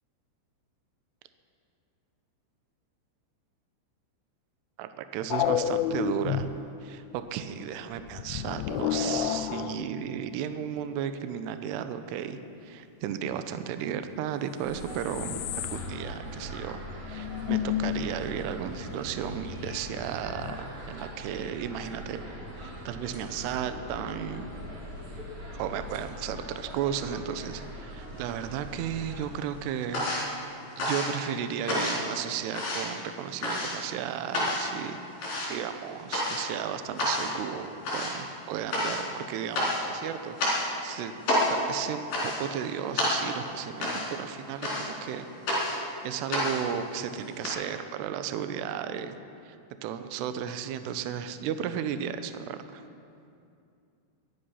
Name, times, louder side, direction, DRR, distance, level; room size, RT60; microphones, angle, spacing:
voice 1, 4.8-6.5 6.8-22.2 22.6-24.5 25.6-30.1 30.8-35.1 35.5-45.3 45.6-49.2 49.5-49.6 49.8-52.8, right 9 dB, 85° right, 9 dB, 2.4 m, -34 dB
sound 1, 5.3-6.6 8.1-10.3 14.4-14.5 14.7-16.0 16.3-16.4 16.7-16.8 17.1-18.1 20.2-20.6, left 11 dB, 85° left, 3.1 m, -30 dB
sound 2, 14.6-29.2, equal, 30° right, 2.9 m, -41 dB
sound 3, 28.1-28.9 29.2-47.5, left 1 dB, 45° left, 5.4 m, -30 dB
23.0 x 11.0 x 5.6 m, 2.5 s
omnidirectional pair, 5.6 m